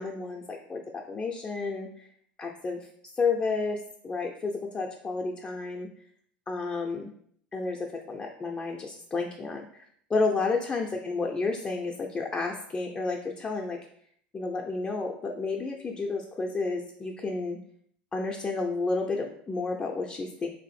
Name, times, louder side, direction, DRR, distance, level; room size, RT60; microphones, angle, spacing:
voice 1, 0.0-2.1 2.4-2.8 3.2-5.9 6.5-7.1 7.5-9.8 10.1-13.8 14.3-17.6 18.1-20.5, left 3 dB, 20° left, 1 dB, 0.5 m, -31 dB
2.7 x 2.5 x 4.1 m, 0.64 s
hypercardioid pair, 80°, 6 cm